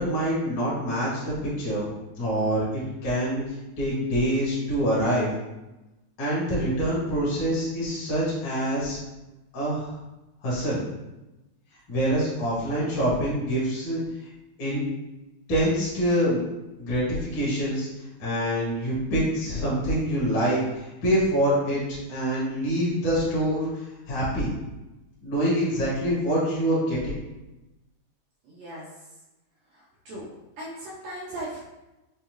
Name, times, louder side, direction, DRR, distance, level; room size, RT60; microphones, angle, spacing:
voice 1, 0.0-1.9 2.2-5.3 6.2-9.0 9.5-9.9 10.4-10.8 11.9-14.0 14.6-14.8 15.5-16.5 16.8-17.9 18.2-24.5 25.2-27.2, equal, 50° left, -7 dB, 1.6 m, -25 dB
voice 2, 28.4-28.8 29.7-30.3 30.6-31.6, right 1 dB, 75° right, -5 dB, 1.6 m, -38 dB
5.2 x 2.3 x 3.0 m, 1.0 s
omnidirectional pair, 3.6 m